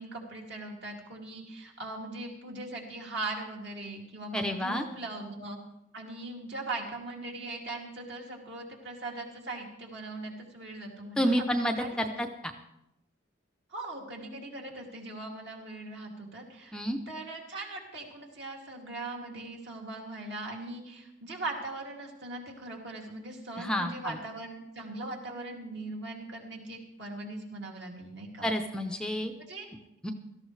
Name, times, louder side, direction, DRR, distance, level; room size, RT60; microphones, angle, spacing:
voice 1, 0.0-5.6 5.9-12.2 13.7-16.8 17.1-28.5 29.4-29.7, right 2 dB, 60° right, -1 dB, 2.5 m, -40 dB
voice 2, 4.3-4.9 11.2-12.3 16.7-17.0 23.6-24.2 28.4-29.3 30.0-30.1, equal, 5° left, 5 dB, 0.6 m, -29 dB
17.5 x 13.5 x 3.2 m, 0.85 s
head